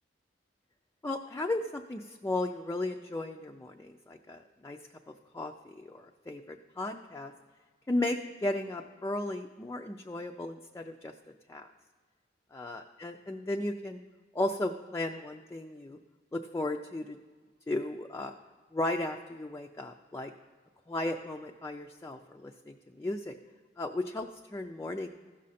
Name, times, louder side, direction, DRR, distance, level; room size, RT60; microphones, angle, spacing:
voice 1, 1.0-4.8 5.1-7.3 7.9-11.1 11.5-11.7 12.5-14.0 14.3-16.0 16.3-17.2 17.7-18.3 18.7-20.3 20.9-23.4 23.8-25.1, left 2 dB, 15° left, 3 dB, 0.3 m, -35 dB
15.0 x 6.3 x 4.2 m, 1.5 s
head